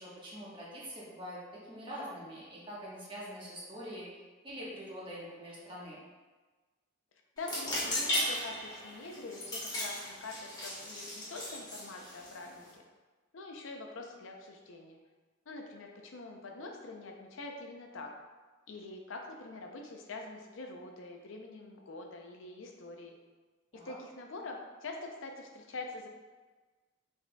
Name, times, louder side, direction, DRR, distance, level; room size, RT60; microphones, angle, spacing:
voice 1, 0.0-6.0 23.7-23.9, equal, 25° right, -6 dB, 1.1 m, -44 dB
voice 2, 7.4-12.8 13.3-15.0 15.5-18.1 18.7-23.2 23.8-26.1, left 2 dB, 65° left, 2 dB, 0.5 m, -45 dB
sound 1, 7.4-12.7, left 1 dB, 20° left, 1.2 m, -37 dB
5.7 x 4.2 x 2.2 m, 1.3 s
head